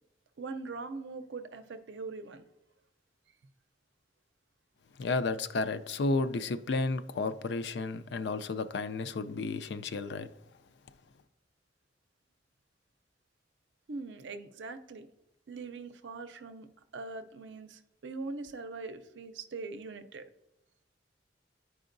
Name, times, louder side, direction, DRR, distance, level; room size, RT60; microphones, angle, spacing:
voice 1, 0.4-2.4 13.9-15.1 15.5-16.7 16.9-20.2, right 3 dB, 80° right, 0.5 m, -42 dB
voice 2, 5.0-10.3, left 3 dB, 65° left, 0.4 m, -32 dB
11.0 x 4.8 x 2.6 m
head